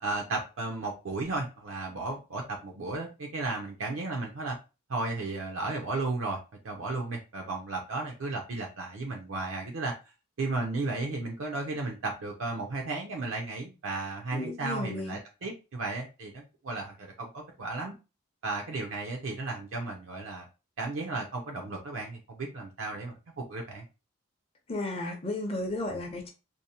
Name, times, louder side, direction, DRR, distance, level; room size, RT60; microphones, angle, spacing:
voice 1, 0.0-4.6 4.9-6.4 6.6-9.9 10.4-17.9 18.4-20.5 20.8-23.8, right 3 dB, 80° right, 1 dB, 0.5 m, -34 dB
voice 2, 14.3-15.2 24.7-26.3, left 2 dB, 30° left, 4 dB, 0.5 m, -34 dB
2.6 x 2.0 x 2.7 m, 0.30 s
head